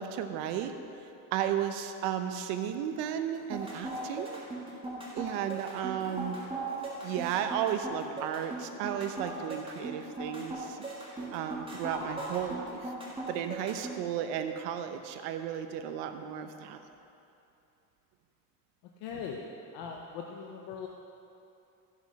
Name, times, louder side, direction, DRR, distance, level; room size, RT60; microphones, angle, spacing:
voice 1, 0.0-4.4 5.1-6.5 7.0-10.8 11.3-12.9 13.3-16.8, right 9 dB, 90° right, 8 dB, 0.9 m, -34 dB
sound 1, 3.3-13.9, right 2 dB, 15° right, 2.8 m, -38 dB
voice 2, 19.0-19.4 19.7-20.9, left 7 dB, 85° left, 0 dB, 1.0 m, -40 dB
14.0 x 7.1 x 5.3 m, 2.8 s
supercardioid pair, 95°, 42 cm